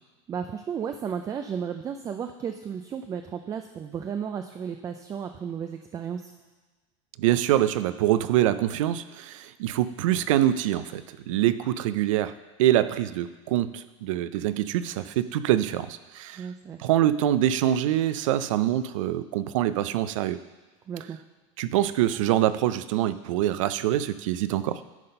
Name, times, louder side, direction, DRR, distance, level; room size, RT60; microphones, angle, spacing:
voice 1, 0.3-6.3 16.4-16.8 20.9-21.2, right 7 dB, 20° right, 6 dB, 0.4 m, -34 dB
voice 2, 7.2-12.3 12.6-16.5 16.8-20.4 21.6-24.8, right 12 dB, 80° right, 14 dB, 0.5 m, -25 dB
10.5 x 4.0 x 5.5 m, 1.3 s
supercardioid pair, 130°, 16 cm